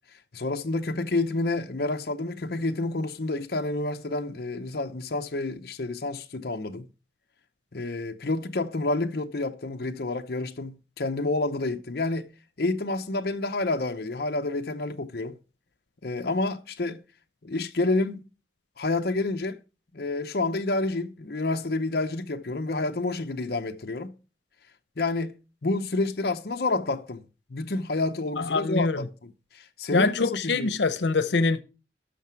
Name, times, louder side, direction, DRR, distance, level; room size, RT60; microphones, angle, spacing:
voice 1, 0.3-6.9 7.7-12.3 12.6-15.4 16.0-17.0 17.4-18.3 18.8-19.6 19.9-24.1 25.0-27.2 27.5-30.7, left 2 dB, 60° left, 0.7 m, -29 dB
voice 2, 28.4-29.0 29.9-31.6, left 4 dB, 90° left, 0.8 m, -24 dB
12.5 x 5.9 x 4.6 m
head